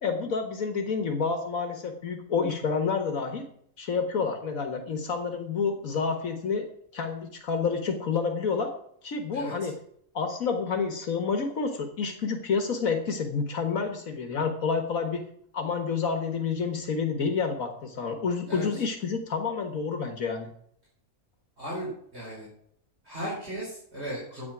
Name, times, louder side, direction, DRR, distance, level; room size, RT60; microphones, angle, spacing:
voice 1, 0.0-3.4 3.8-6.7 6.9-8.7 9.0-9.8 10.2-15.2 15.5-20.5, left 5 dB, 75° left, 5 dB, 1.7 m, -29 dB
voice 2, 9.3-9.7 18.5-18.8 21.6-22.5 23.0-24.5, equal, 50° right, -6 dB, 4.9 m, -36 dB
12.0 x 8.7 x 6.0 m, 0.68 s
omnidirectional pair, 1.5 m